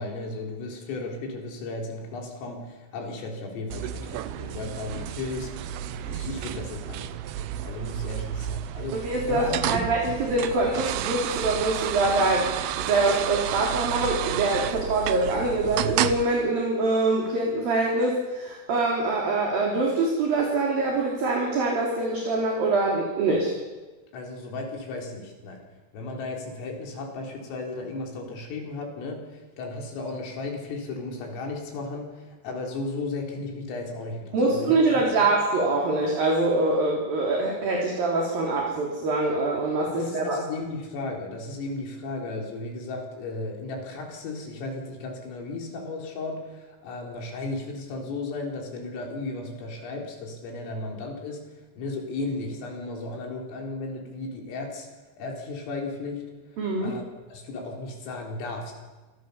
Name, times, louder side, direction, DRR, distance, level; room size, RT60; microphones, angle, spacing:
voice 1, 0.0-5.5 6.0-7.1 7.6-9.9 24.1-25.6 25.9-34.8 35.2-35.3 39.9-51.4 51.8-54.9 55.2-56.2 56.8-57.0 57.3-58.7, left 3 dB, 80° left, 1 dB, 7.1 m, -35 dB
sound 1, 3.7-16.2, right 11 dB, 85° right, 2.2 m, -31 dB
voice 2, 9.0-23.5 34.3-40.4 56.6-57.0, right 2 dB, 50° right, -1 dB, 4.9 m, -24 dB
26.5 x 25.5 x 7.2 m, 1.2 s
omnidirectional pair, 5.9 m